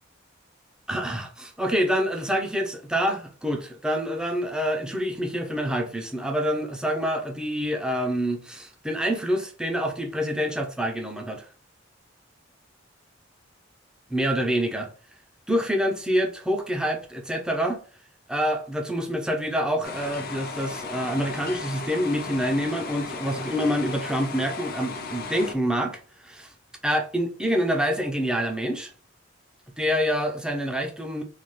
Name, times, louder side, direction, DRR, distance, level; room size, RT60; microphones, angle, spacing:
voice 1, 0.9-11.4 14.1-14.9 15.5-17.8 18.3-26.5 26.8-28.9 29.8-31.2, equal, 5° right, 0.5 m, -26 dB
sound 1, 19.8-25.5, left 4 dB, 50° left, 0.5 m, -35 dB
3.2 x 2.3 x 3.6 m
head